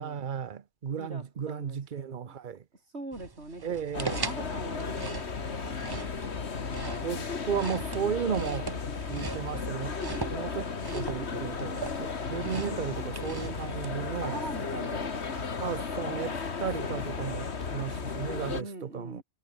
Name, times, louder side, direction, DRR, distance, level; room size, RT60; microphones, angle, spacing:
voice 1, 0.0-2.6 3.6-4.2 7.0-8.7 9.1-10.0 10.3-14.4 15.6-19.2, right 7 dB, 50° right, 1.0 m, -34 dB
voice 2, 1.0-2.3 2.9-5.8 14.2-15.5 18.6-19.2, right 2 dB, 80° right, 5.1 m, -42 dB
sound 1, 3.1-13.9, right 3 dB, 25° right, 0.8 m, -40 dB
sound 2, 3.9-18.6, left 5 dB, 80° left, 2.0 m, -35 dB
omnidirectional pair, 1.1 m